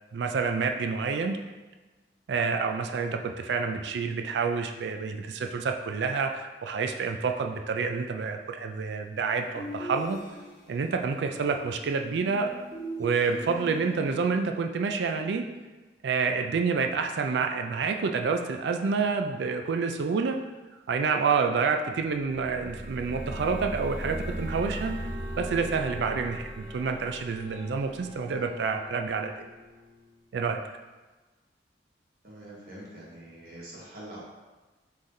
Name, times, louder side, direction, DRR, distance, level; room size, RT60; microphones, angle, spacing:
voice 1, 0.1-1.4 2.3-10.2 10.7-12.5 13.0-15.5 16.0-20.4 20.9-25.0 25.4-29.5 30.3-30.6, right 5 dB, 75° right, 5 dB, 0.4 m, -28 dB
sound 1, 9.5-10.8 12.1-14.3, equal, 15° left, 1.4 m, -40 dB
sound 2, 22.1-28.8, equal, 35° right, 0.8 m, -38 dB
Bowed string instrument, 24.2-30.3, equal, 55° left, 0.7 m, -51 dB
voice 2, 32.2-34.3, right 1 dB, 55° right, -6 dB, 1.4 m, -44 dB
5.6 x 3.2 x 2.6 m, 1.2 s
head